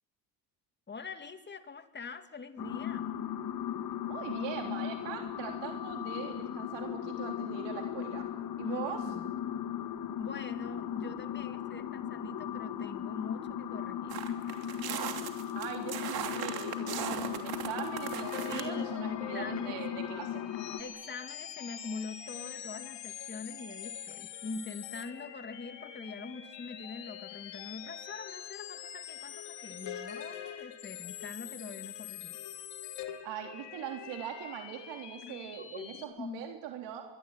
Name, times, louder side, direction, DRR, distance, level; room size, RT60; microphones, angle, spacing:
voice 1, 0.9-3.1 8.6-9.3 10.2-14.2 18.5-20.1 20.8-32.4 35.2-36.4, left 4 dB, 25° left, 9 dB, 2.3 m, -43 dB
sound 1, 2.6-20.8, left 10 dB, 55° left, 2.2 m, -37 dB
voice 2, 4.0-8.3 8.6-9.0 15.5-20.4 33.2-37.0, right 9 dB, 85° right, 3 dB, 3.6 m, -41 dB
sound 2, 14.1-18.6, right 9 dB, 60° right, 3.1 m, -38 dB
sound 3, 18.1-36.0, left 10 dB, 85° left, 3.2 m, -44 dB
24.0 x 23.5 x 9.1 m, 0.94 s
cardioid pair, 115°, 42 cm